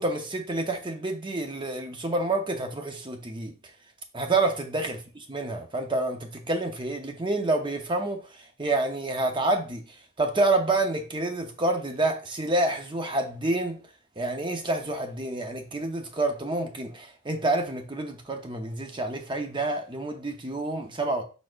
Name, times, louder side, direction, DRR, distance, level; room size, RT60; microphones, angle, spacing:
voice 1, 0.0-3.5 4.1-5.0 5.3-8.2 8.6-9.8 10.2-13.8 14.2-21.2, right 2 dB, 25° right, 0.7 m, -28 dB
5.1 x 4.1 x 2.4 m
head